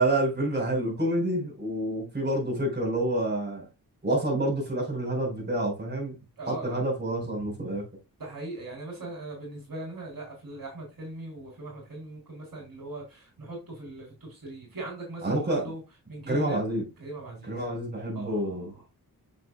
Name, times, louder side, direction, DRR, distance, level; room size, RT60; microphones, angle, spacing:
voice 1, 0.0-3.6 4.0-6.2 6.5-7.8 15.2-15.6 16.3-16.8 17.5-18.7, right 1 dB, 25° right, 4.7 m, -28 dB
voice 2, 6.4-6.8 8.2-15.8 16.1-16.6 17.0-17.5 18.1-18.7, right 2 dB, 65° right, 3.6 m, -40 dB
7.7 x 6.8 x 2.3 m
wide cardioid pair, 90°, 37 cm